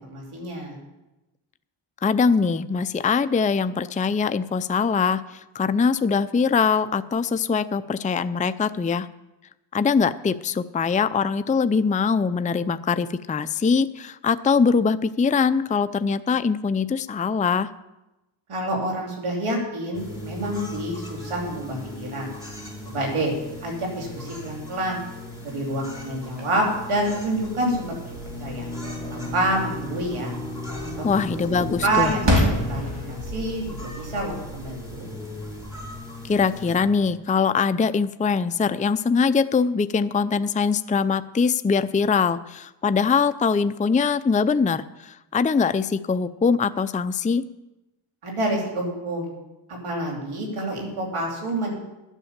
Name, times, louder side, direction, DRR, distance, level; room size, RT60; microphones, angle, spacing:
voice 1, 0.1-0.7 18.5-22.3 22.8-23.3 23.6-25.0 25.5-28.0 28.4-28.7 29.1-30.3 30.8-31.2 31.8-32.8 33.1-35.1 48.2-49.3 49.8-51.7, right 1 dB, 85° right, 0 dB, 3.5 m, -27 dB
voice 2, 2.0-9.1 9.7-17.7 31.0-32.1 36.2-47.4, left 5 dB, 15° left, 13 dB, 0.4 m, -22 dB
sound 1, 19.9-36.8, left 1 dB, 5° right, 4.4 m, -37 dB
sound 2, 26.3-37.2, equal, 60° right, 3.6 m, -32 dB
12.0 x 8.2 x 7.3 m, 0.99 s
cardioid pair, 55°, 50 cm